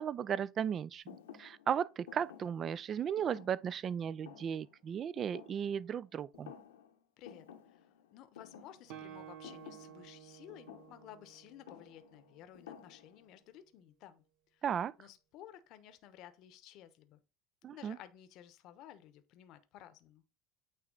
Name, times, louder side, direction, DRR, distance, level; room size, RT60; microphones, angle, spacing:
voice 1, 0.0-6.5 14.6-14.9 17.6-18.0, right 8 dB, 40° right, 0.4 m, -36 dB
Thump thud, 1.1-6.1 6.3-7.0 7.2-13.4, left 8 dB, 90° left, 1.1 m, -55 dB
voice 2, 7.2-14.2 14.5-14.6 15.0-17.2 17.7-20.2, left 11 dB, 60° left, 0.9 m, -55 dB
Guitar, 8.9-12.6, right 10 dB, 60° right, 1.0 m, -53 dB
8.9 x 3.2 x 3.9 m
hypercardioid pair, 85°, 0 cm